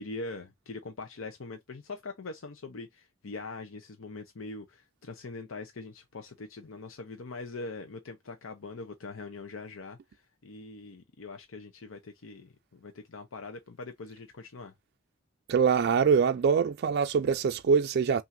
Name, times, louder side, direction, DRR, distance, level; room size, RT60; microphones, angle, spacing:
voice 1, 0.0-14.7, left 3 dB, 90° left, 0.7 m, -42 dB
voice 2, 15.5-18.2, right 6 dB, 55° right, 0.3 m, -24 dB
5.7 x 2.6 x 2.6 m
head